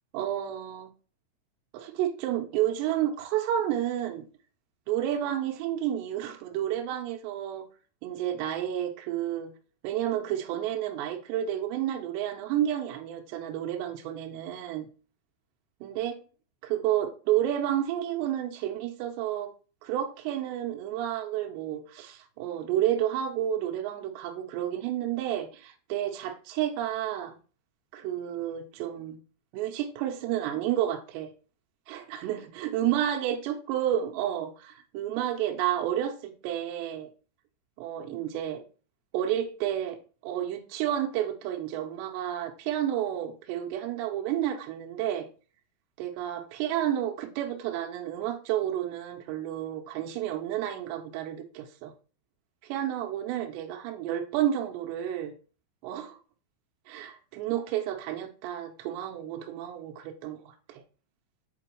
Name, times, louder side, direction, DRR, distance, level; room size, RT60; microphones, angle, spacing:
voice 1, 0.1-0.9 1.7-4.2 4.9-7.6 8.0-9.5 9.8-14.9 15.8-16.2 16.7-19.5 19.8-27.4 27.9-29.2 29.5-31.3 31.9-37.1 37.8-38.6 39.1-45.3 46.0-51.9 52.6-55.3 55.8-56.2 56.9-60.8, right 11 dB, 80° right, 2.8 m, -31 dB
7.7 x 4.3 x 3.0 m
omnidirectional pair, 5.3 m